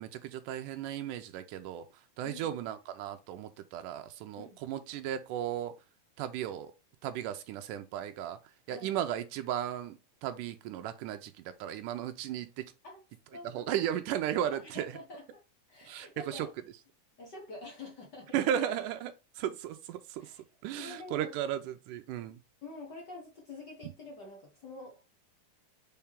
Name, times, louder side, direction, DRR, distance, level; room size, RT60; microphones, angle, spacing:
voice 1, 0.0-1.9 2.2-5.7 6.2-6.7 7.0-8.4 8.7-12.7 13.4-14.9 15.8-16.5 18.3-20.3 20.6-22.4, right 10 dB, 80° right, 2.0 m, -35 dB
voice 2, 13.3-13.9 14.6-15.4 15.7-16.5 17.2-18.3 20.2-20.4 20.8-21.3 22.6-25.0, left 2 dB, 60° left, 1.1 m, -47 dB
5.7 x 4.7 x 3.6 m
omnidirectional pair, 4.1 m